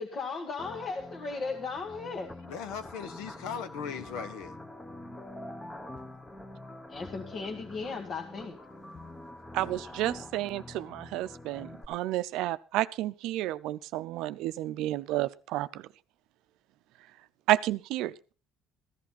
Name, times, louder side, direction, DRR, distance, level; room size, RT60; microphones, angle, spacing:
voice 1, 0.0-2.3 6.9-8.6, left 4 dB, 50° left, 1.8 m, -36 dB
sound 1, 0.6-11.9, left 1 dB, 15° left, 1.3 m, -45 dB
voice 2, 2.5-4.6, left 7 dB, 80° left, 1.3 m, -38 dB
voice 3, 9.5-15.9 17.5-18.2, right 15 dB, 75° right, 0.6 m, -31 dB
15.5 x 11.5 x 4.2 m
supercardioid pair, 80°, 0 cm